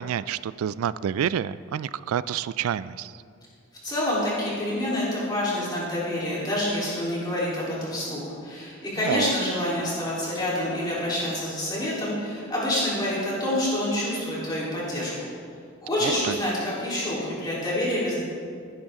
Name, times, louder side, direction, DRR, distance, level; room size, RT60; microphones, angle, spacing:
voice 1, 0.0-3.1 9.0-9.3 16.0-16.3, right 9 dB, 85° right, 17 dB, 0.3 m, -28 dB
voice 2, 3.8-15.1 15.8-18.2, left 1 dB, 20° left, -8 dB, 3.7 m, -27 dB
16.5 x 10.5 x 3.7 m, 2.3 s
head